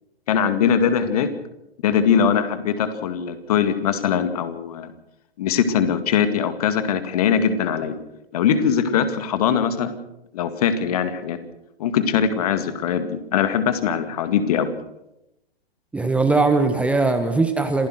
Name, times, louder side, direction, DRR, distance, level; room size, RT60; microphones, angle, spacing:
voice 1, 0.3-1.3 1.8-4.9 5.4-8.0 8.3-10.0 10.3-11.4 11.8-14.7, left 7 dB, 40° left, 10 dB, 2.1 m, -21 dB
voice 2, 15.9-17.9, right 3 dB, 5° right, 7 dB, 1.1 m, -20 dB
27.0 x 16.0 x 6.5 m, 0.89 s
figure-of-eight pair, 120°, 30 cm